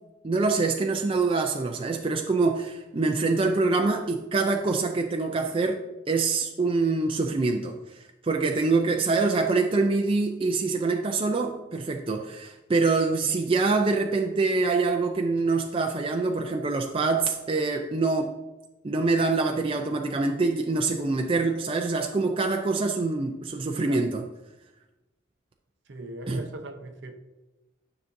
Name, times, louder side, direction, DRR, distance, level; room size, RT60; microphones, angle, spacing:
voice 1, 0.2-7.8 8.2-18.3 18.8-24.2 26.3-26.4, right 3 dB, 25° right, 0.4 m, -25 dB
voice 2, 25.9-27.2, right 2 dB, 60° right, 0.7 m, -40 dB
9.8 x 5.7 x 2.6 m
head